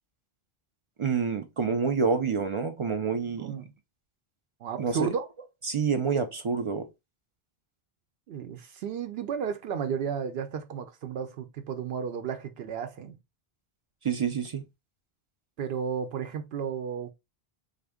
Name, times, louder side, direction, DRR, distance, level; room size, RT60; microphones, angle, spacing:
voice 1, 1.0-3.5 4.8-5.1 5.6-6.9 14.0-14.6, right 5 dB, 55° right, 0.3 m, -28 dB
voice 2, 3.4-3.7 4.6-5.3 8.3-13.2 15.6-17.1, right 7 dB, 75° right, 0.8 m, -33 dB
3.4 x 2.1 x 3.4 m
omnidirectional pair, 1.0 m